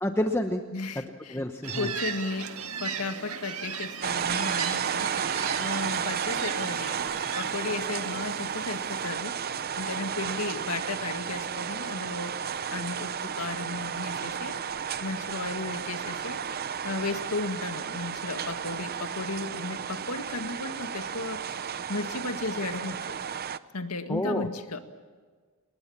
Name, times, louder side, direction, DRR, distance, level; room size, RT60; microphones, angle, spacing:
voice 1, 0.0-0.6 1.3-1.9 24.1-24.5, left 1 dB, 10° left, 5 dB, 1.0 m, -28 dB
voice 2, 0.7-1.4 1.7-5.3 5.6-7.1 7.4-12.3 12.7-14.6 15.0-16.4 16.8-21.4 21.9-23.0 23.7-24.8, left 3 dB, 85° left, 7 dB, 1.9 m, -35 dB
sound 1, 1.6-9.1, right 6 dB, 75° right, 1.8 m, -37 dB
sound 2, 4.0-23.6, right 7 dB, 45° right, 0.7 m, -33 dB
29.0 x 20.5 x 7.3 m, 1.5 s
head